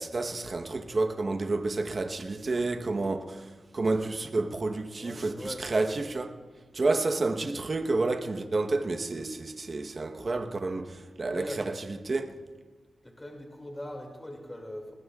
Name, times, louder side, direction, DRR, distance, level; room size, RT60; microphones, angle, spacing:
voice 1, 0.0-6.3 6.7-11.7 12.0-12.4, right 3 dB, 45° right, 1.1 m, -30 dB
voice 2, 4.9-6.0 11.3-11.7 13.0-14.9, left 1 dB, 15° left, 2.5 m, -40 dB
21.5 x 20.0 x 2.4 m
cardioid pair, 70°, 0 cm